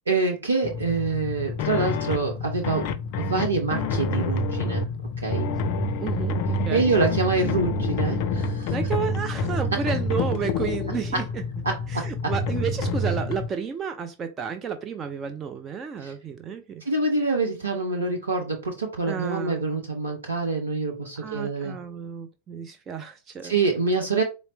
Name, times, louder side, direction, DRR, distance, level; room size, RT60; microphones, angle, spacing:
voice 1, 0.1-4.9 5.2-5.5 6.7-8.7 11.1-11.2 11.6-12.3 16.0-16.1 16.8-21.8 23.4-24.2, right 3 dB, 75° right, 0.6 m, -26 dB
sound 1, 0.6-13.5, left 2 dB, 45° left, 0.4 m, -28 dB
voice 2, 3.2-3.5 6.0-6.9 8.7-11.4 11.9-16.8 19.1-19.6 21.2-23.6, right 6 dB, 25° right, 0.4 m, -32 dB
4.2 x 2.0 x 3.8 m
figure-of-eight pair, 90°, 0 cm